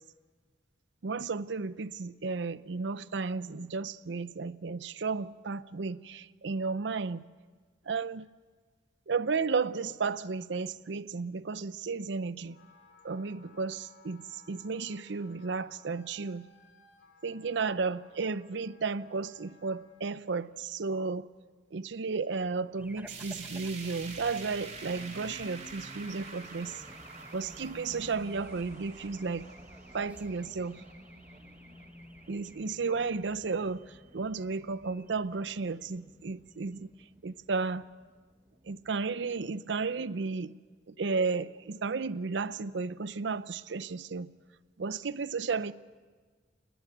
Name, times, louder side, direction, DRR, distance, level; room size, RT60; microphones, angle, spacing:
voice 1, 1.0-7.2 7.9-8.3 9.1-12.6 13.0-16.5 17.2-21.3 21.7-26.8 27.3-29.5 29.9-30.8 32.3-36.9 37.2-37.9 38.7-40.6 40.9-44.3 44.8-45.7, right 4 dB, 75° right, 0.6 m, -33 dB
Wind instrument woodwind instrument, 12.4-20.1, left 4 dB, 90° left, 2.2 m, -60 dB
Race car auto racing / Alarm, 22.8-39.7, equal, 10° right, 1.1 m, -52 dB
sound 1, 23.1-33.2 33.6-33.7 34.1-34.2 35.1-35.2, right 4 dB, 35° right, 3.0 m, -48 dB
29.0 x 11.0 x 9.0 m
head